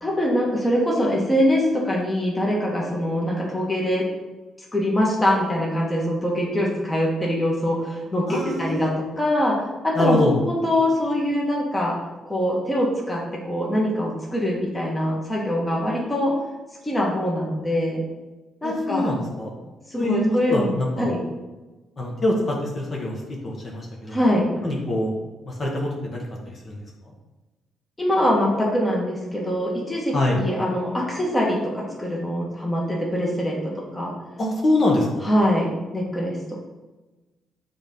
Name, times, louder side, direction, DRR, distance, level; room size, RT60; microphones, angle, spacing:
voice 1, 0.0-4.1 4.7-12.0 12.2-16.3 16.8-18.0 18.6-19.1 19.9-21.2 24.1-24.6 28.0-34.1 35.2-36.4, left 1 dB, 15° left, -2 dB, 1.6 m, -23 dB
voice 2, 8.3-8.9 9.9-10.4 18.6-19.5 20.0-21.1 22.0-24.2 24.6-25.1 25.4-26.8 30.1-30.4 34.4-35.3, left 1 dB, 40° left, -2 dB, 1.6 m, -24 dB
7.1 x 3.7 x 5.5 m, 1.1 s
cardioid pair, 90°, 0 cm